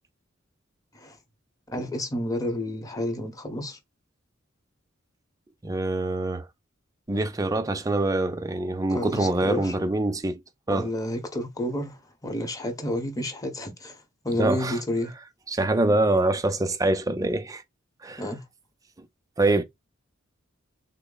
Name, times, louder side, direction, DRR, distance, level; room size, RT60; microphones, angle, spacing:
voice 1, 1.7-3.8 8.9-9.8 10.7-15.1 18.2-18.4, left 1 dB, 20° left, 0.9 m, -30 dB
voice 2, 5.6-6.5 7.1-10.4 10.7-10.9 14.4-14.8 15.5-17.6 18.0-18.2 19.4-19.6, right 2 dB, 15° right, 0.4 m, -24 dB
3.6 x 2.0 x 3.8 m
head